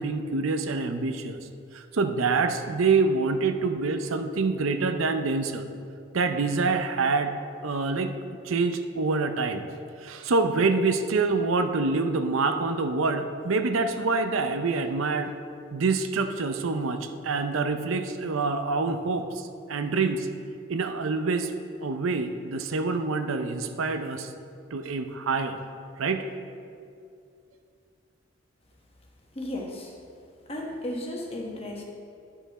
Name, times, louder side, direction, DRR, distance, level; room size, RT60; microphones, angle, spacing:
voice 1, 0.0-1.4 1.7-5.7 6.1-7.3 7.6-8.1 8.4-9.7 10.0-15.3 15.7-20.3 20.7-21.5 21.8-24.3 24.7-25.6 26.0-26.2, right 4 dB, 90° right, 8 dB, 0.6 m, -26 dB
voice 2, 29.3-29.9 30.5-31.8, left 1 dB, 30° left, -1 dB, 1.1 m, -34 dB
10.5 x 5.8 x 4.1 m, 2.4 s
head